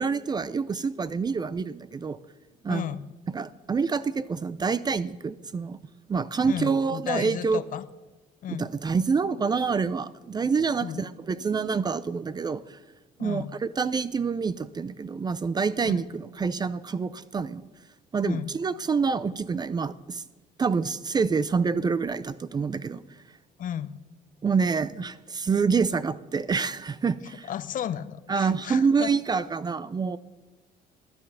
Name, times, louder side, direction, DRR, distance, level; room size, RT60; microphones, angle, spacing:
voice 1, 0.0-2.2 2.6-2.9 3.3-5.8 6.1-7.6 8.5-12.8 13.2-17.6 18.1-20.2 20.6-23.0 24.4-27.5 28.3-30.2, right 5 dB, 25° right, 16 dB, 0.4 m, -27 dB
voice 2, 2.7-3.0 6.4-7.8 8.4-8.7 10.8-11.0 13.2-13.5 15.8-16.0 18.2-18.5 23.6-24.0 27.5-29.1, left 9 dB, 50° left, 15 dB, 0.6 m, -33 dB
12.5 x 9.4 x 5.7 m, 1.1 s
cardioid pair, 110°, 17 cm